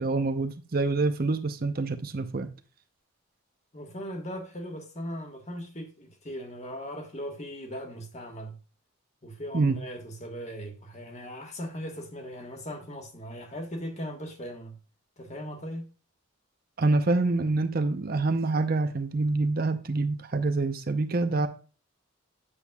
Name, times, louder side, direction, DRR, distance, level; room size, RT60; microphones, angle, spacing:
voice 1, 0.0-2.5 9.5-9.8 16.8-21.5, right 3 dB, 45° right, 0.7 m, -26 dB
voice 2, 3.7-8.5 9.2-14.8 15.2-15.9, equal, 35° left, 1.4 m, -38 dB
8.3 x 7.4 x 2.3 m
head